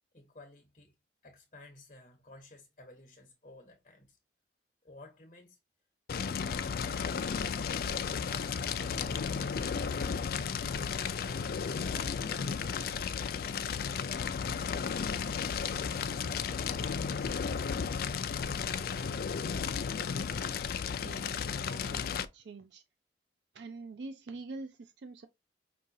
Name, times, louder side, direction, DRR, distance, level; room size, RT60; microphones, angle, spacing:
voice 1, 0.1-0.9 1.2-4.2 4.8-5.6 6.1-7.6 7.9-8.5 8.8-13.4, left 1 dB, 40° left, 1.0 m, -54 dB
Fire, 6.1-22.3, left 6 dB, 55° left, 0.3 m, -34 dB
voice 2, 21.0-22.8 23.5-25.3, right 3 dB, 70° right, 0.4 m, -45 dB
5.3 x 2.8 x 2.6 m
head